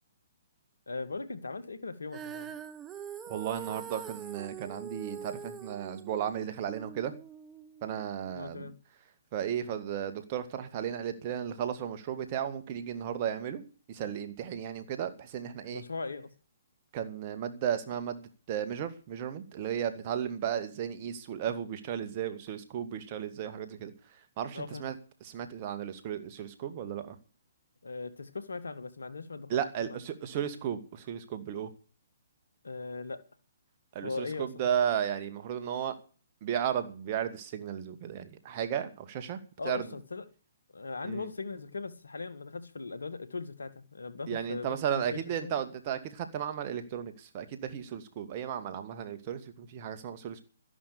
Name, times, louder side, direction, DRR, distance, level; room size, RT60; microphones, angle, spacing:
voice 1, 0.9-2.5 8.3-8.7 15.7-16.3 24.5-24.8 27.8-30.0 32.6-33.2 34.0-34.7 39.6-40.3 40.7-45.5, left 3 dB, 80° left, 2.0 m, -39 dB
Female singing, 2.1-8.3, right 8 dB, 20° right, 1.5 m, -44 dB
voice 2, 3.3-7.1 7.8-8.7 9.3-13.6 13.9-15.8 16.9-23.9 24.4-25.0 25.2-27.2 29.5-31.7 33.9-35.9 36.4-39.4 39.6-39.9 41.0-41.2 44.3-50.4, right 9 dB, 40° right, 2.4 m, -34 dB
13.0 x 11.0 x 6.9 m
figure-of-eight pair, 130°, 0 cm